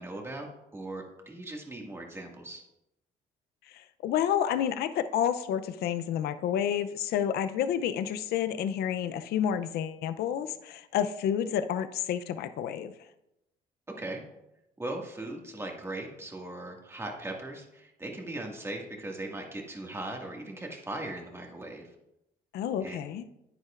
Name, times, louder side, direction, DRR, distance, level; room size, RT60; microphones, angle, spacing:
voice 1, 0.0-2.6 14.0-14.2 14.8-21.9 22.8-23.0, right 2 dB, 15° right, 0 dB, 1.9 m, -39 dB
voice 2, 3.7-12.9 22.5-23.2, left 9 dB, 70° left, 11 dB, 0.5 m, -30 dB
10.0 x 9.6 x 2.5 m, 0.86 s
cardioid pair, 110°, 17 cm